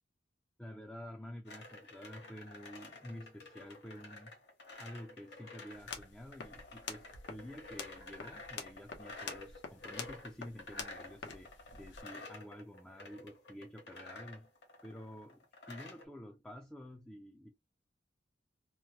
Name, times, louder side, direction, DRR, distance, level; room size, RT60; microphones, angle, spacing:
voice 1, 0.6-4.4 4.8-14.5 14.8-17.5, equal, 5° left, 0.3 m, -50 dB
sound 1, 1.5-16.0, left 2 dB, 65° left, 1.1 m, -51 dB
sound 2, 5.7-12.0, left 5 dB, 85° left, 0.7 m, -48 dB
2.9 x 2.1 x 2.8 m
head